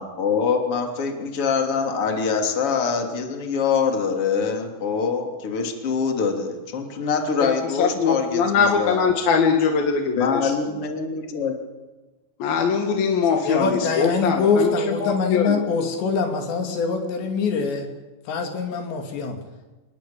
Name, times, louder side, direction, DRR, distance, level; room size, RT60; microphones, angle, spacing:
voice 1, 0.0-9.1 10.2-11.6, left 5 dB, 35° left, 3 dB, 3.5 m, -24 dB
voice 2, 7.4-10.8 12.4-15.7, left 5 dB, 60° left, 3 dB, 3.5 m, -22 dB
voice 3, 13.5-17.9 18.3-19.4, left 5 dB, 80° left, 4 dB, 5.1 m, -24 dB
28.0 x 20.0 x 8.9 m, 1.2 s
omnidirectional pair, 4.9 m